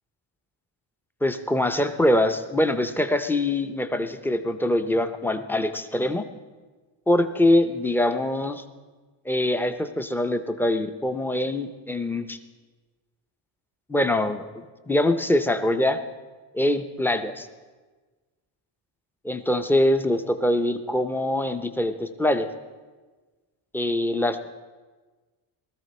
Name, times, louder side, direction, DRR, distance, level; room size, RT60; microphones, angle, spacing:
voice 1, 1.2-6.2 7.1-8.6 9.3-12.4 13.9-16.0 16.5-17.5 19.2-22.5 23.7-24.5, left 1 dB, 5° left, 8 dB, 0.5 m, -23 dB
19.0 x 13.5 x 4.2 m, 1.3 s
cardioid pair, 150°, 47 cm